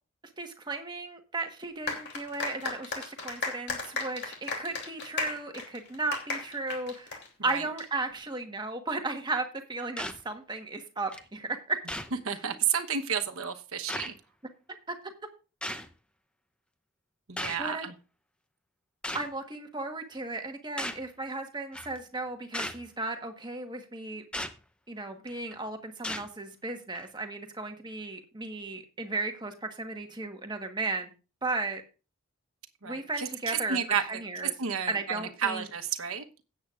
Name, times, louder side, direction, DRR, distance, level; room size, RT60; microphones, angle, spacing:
voice 1, 0.4-11.8 14.9-15.1 17.6-17.9 19.1-24.2 24.9-31.1 31.4-31.8 32.8-34.5 34.9-35.7, right 3 dB, 20° right, 5 dB, 1.3 m, -35 dB
sound 1, 1.9-7.8, left 4 dB, 50° left, 2.9 m, -35 dB
sound 2, 10.0-10.2 11.1-11.2 11.9-12.1 13.1-13.2 13.9-14.1 15.6-15.9 17.4-17.6 19.0-19.3 20.8-21.0 21.7-22.0 22.5-22.8 24.3-24.5 25.3-25.5 26.0-26.3 26.9-27.1, left 1 dB, 5° left, 0.7 m, -35 dB
voice 2, 12.2-14.1 17.3-17.9 32.8-36.2, right 7 dB, 70° right, 7 dB, 1.1 m, -31 dB
17.0 x 8.5 x 2.5 m, 0.33 s
head